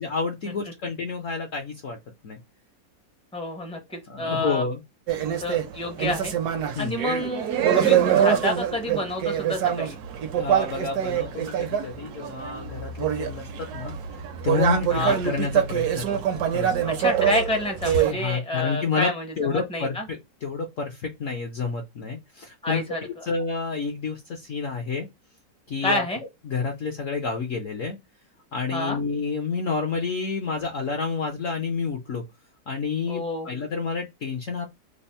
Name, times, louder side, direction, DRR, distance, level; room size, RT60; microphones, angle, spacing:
voice 1, 0.0-2.0 2.2-2.4 4.1-4.8 6.7-7.0 10.4-16.9 18.1-19.1 19.4-25.1 25.7-26.0 26.4-28.0 28.5-32.2 32.7-34.7, left 4 dB, 65° left, 0.8 m, -29 dB
voice 2, 3.3-4.6 5.2-6.3 6.8-7.4 7.8-10.0 14.9-15.2 17.0-20.1 22.6-23.0 25.8-26.2 28.7-29.0 33.1-33.5, left 1 dB, 10° left, 0.3 m, -28 dB
sound 1, 5.1-18.1, right 9 dB, 70° right, 1.1 m, -25 dB
3.4 x 2.0 x 4.1 m
omnidirectional pair, 1.9 m